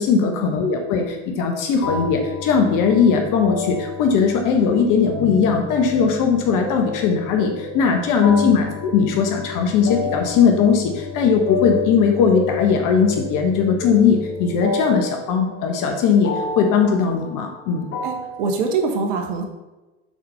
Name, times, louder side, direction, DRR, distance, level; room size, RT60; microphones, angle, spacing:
voice 1, 0.0-17.9, left 6 dB, 60° left, 3 dB, 1.4 m, -19 dB
sound 1, 1.8-18.5, left 4 dB, 40° left, 2.5 m, -30 dB
voice 2, 18.0-19.4, right 4 dB, 75° right, 3 dB, 1.4 m, -24 dB
7.6 x 4.3 x 5.6 m, 1.1 s
hypercardioid pair, 80°, 36 cm